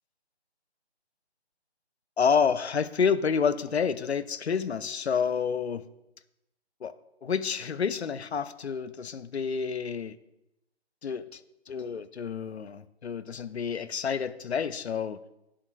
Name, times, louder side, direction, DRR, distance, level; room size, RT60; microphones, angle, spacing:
voice 1, 2.2-5.8 6.8-6.9 7.2-10.2 11.0-11.4 11.7-15.2, left 6 dB, 70° left, 15 dB, 0.7 m, -29 dB
19.0 x 7.5 x 2.3 m, 0.89 s
figure-of-eight pair, 155°, 33 cm